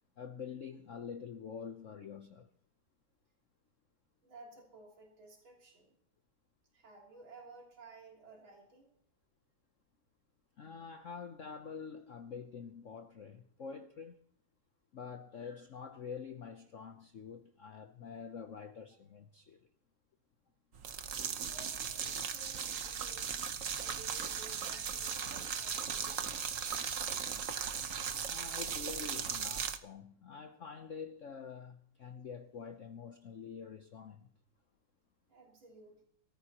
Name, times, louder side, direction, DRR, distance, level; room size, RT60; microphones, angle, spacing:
voice 1, 0.2-2.5 10.6-14.2 14.9-19.6 24.7-24.8 28.2-34.3, left 6 dB, 55° left, 0.9 m, -46 dB
voice 2, 4.2-5.9 6.7-8.9 21.5-23.3 23.8-26.3 35.3-36.0, right 3 dB, 85° right, 4.0 m, -56 dB
sound 1, 20.7-29.8, right 7 dB, 50° right, 1.1 m, -37 dB
23.0 x 14.0 x 2.9 m
omnidirectional pair, 2.1 m